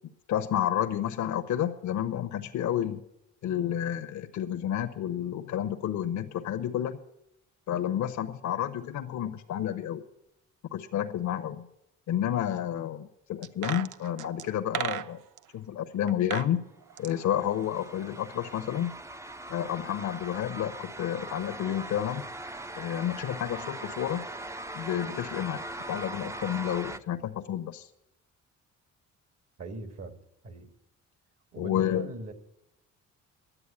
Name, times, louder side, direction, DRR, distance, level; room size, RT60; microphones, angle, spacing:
voice 1, 0.3-3.0 3.4-7.0 7.7-10.0 10.7-11.7 12.1-15.2 15.5-16.6 17.0-18.9 19.5-22.2 22.8-24.2 24.7-27.9 31.6-32.1, left 10 dB, 70° left, 7 dB, 0.9 m, -30 dB
sound 1, 13.4-15.4 16.1-16.5 16.8-18.2 18.5-18.6, right 11 dB, 85° right, 0.6 m, -36 dB
sound 2, 16.9-27.0, right 1 dB, 10° right, 0.6 m, -41 dB
voice 2, 29.6-30.7 31.5-32.3, right 2 dB, 55° right, 7 dB, 1.9 m, -41 dB
11.0 x 8.0 x 10.0 m, 0.82 s
cardioid pair, 90°, 30 cm